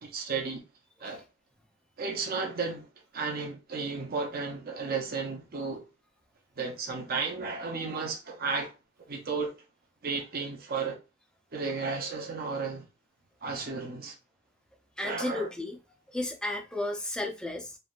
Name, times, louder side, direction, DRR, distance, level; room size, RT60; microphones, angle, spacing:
voice 1, 0.0-0.6 1.0-1.2 2.0-2.9 3.1-5.8 6.6-8.7 9.1-9.5 10.0-11.0 11.5-12.9 13.4-14.2 15.0-15.5, right 4 dB, 45° right, 0.6 m, -33 dB
voice 2, 15.0-15.8 16.1-17.8, left 2 dB, 5° left, 0.5 m, -33 dB
3.2 x 2.5 x 2.4 m
head